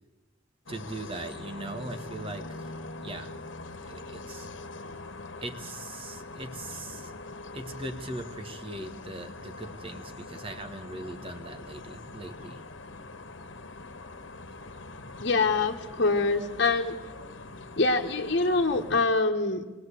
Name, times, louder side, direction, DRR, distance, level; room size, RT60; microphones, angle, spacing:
sound 1, 0.7-19.0, left 2 dB, 90° left, 1.4 m, -43 dB
voice 1, 0.7-2.7 3.0-3.3 3.8-4.5 5.4-7.1 7.5-12.6 17.5-17.6, right 2 dB, 30° right, 6 dB, 1.6 m, -40 dB
voice 2, 15.2-17.0 17.8-19.6, left 3 dB, 60° left, -1 dB, 1.4 m, -25 dB
21.5 x 18.5 x 8.4 m, 1.2 s
head